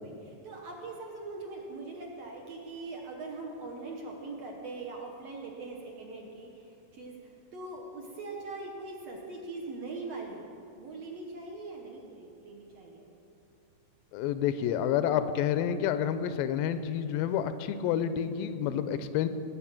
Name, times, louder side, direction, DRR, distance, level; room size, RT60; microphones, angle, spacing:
voice 1, 0.0-10.4 10.8-13.1, right 3 dB, 60° right, -1 dB, 1.8 m, -42 dB
voice 2, 14.1-19.3, left 9 dB, 85° left, 11 dB, 2.3 m, -29 dB
18.5 x 7.4 x 5.9 m, 2.7 s
omnidirectional pair, 4.0 m